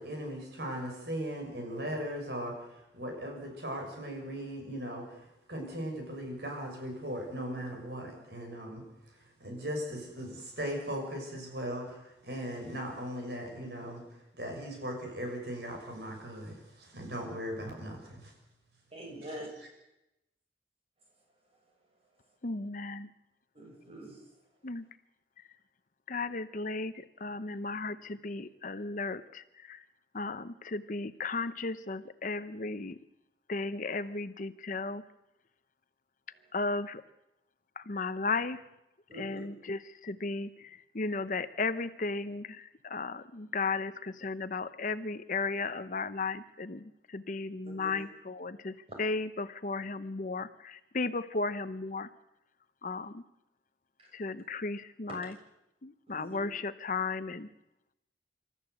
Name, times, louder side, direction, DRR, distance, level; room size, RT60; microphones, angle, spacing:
voice 1, 0.0-14.0 14.3-18.3 19.2-19.3, equal, 65° right, 2 dB, 6.4 m, -38 dB
voice 2, 18.9-19.5 23.5-24.2 39.1-39.4 47.6-48.0 54.0-54.1 55.1-55.2 56.1-56.4, right 1 dB, 35° right, 1 dB, 6.8 m, -45 dB
voice 3, 22.4-23.1 24.6-24.8 26.1-29.8 30.1-33.0 33.5-35.0 36.5-37.0 37.8-38.6 39.2-52.1 52.8-53.2 54.1-55.3 55.8-57.5, left 3 dB, 45° left, 13 dB, 0.8 m, -35 dB
27.0 x 13.5 x 8.0 m, 0.90 s
head